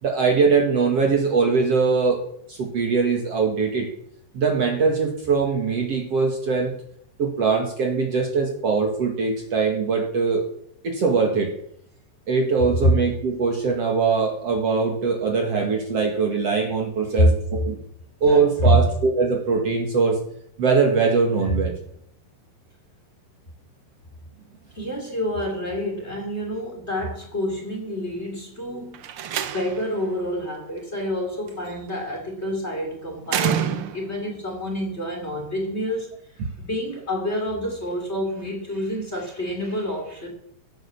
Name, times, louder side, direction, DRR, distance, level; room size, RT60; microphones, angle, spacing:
voice 1, 0.0-2.2 2.5-3.9 4.3-6.7 7.2-10.5 10.8-11.5 12.3-17.8 18.2-20.2 20.6-21.7, right 4 dB, 50° right, 1 dB, 2.8 m, -22 dB
voice 2, 18.3-18.8 21.4-21.5 24.8-29.0 29.4-36.2 36.6-40.3, equal, 20° left, 2 dB, 3.7 m, -28 dB
Slam, 28.9-30.0 31.5-31.9 33.3-34.2, right 10 dB, 80° right, 1.2 m, -27 dB
16.5 x 9.6 x 7.1 m, 0.68 s
omnidirectional pair, 3.9 m